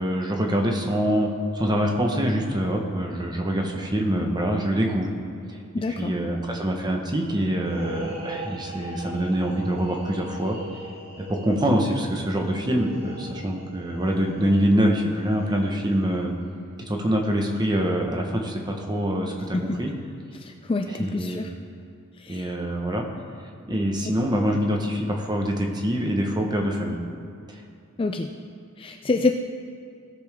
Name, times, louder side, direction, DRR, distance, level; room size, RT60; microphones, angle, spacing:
voice 1, 0.0-5.1 5.5-5.6 5.9-10.6 11.3-16.3 16.9-19.9 20.9-21.4 22.3-23.1 23.7-27.0 27.5-27.6, equal, 20° right, 1 dB, 1.0 m, -25 dB
voice 2, 5.7-6.1 19.5-19.8 20.4-21.5 22.2-22.5 28.0-28.3 28.8-29.3, left 3 dB, 25° left, 4 dB, 0.3 m, -26 dB
sound 1, 7.6-16.2, right 1 dB, 45° right, 2.7 m, -40 dB
16.5 x 6.9 x 3.5 m, 2.6 s
head